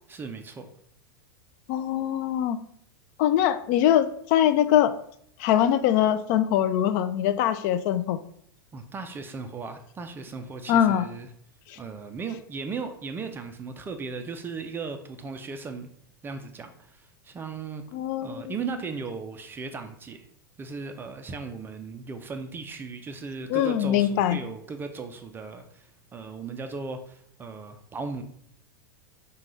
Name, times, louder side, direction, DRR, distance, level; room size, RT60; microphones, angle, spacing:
voice 1, 0.1-0.7 8.7-11.3 11.8-15.9 16.2-17.8 18.2-20.2 20.6-28.2, right 4 dB, 20° right, 7 dB, 0.4 m, -37 dB
voice 2, 1.7-2.6 3.2-4.9 5.4-8.2 10.7-11.0 17.9-18.5 23.5-24.4, left 11 dB, 50° left, 11 dB, 0.3 m, -22 dB
5.1 x 2.2 x 3.1 m, 0.65 s
hypercardioid pair, 110°, 12 cm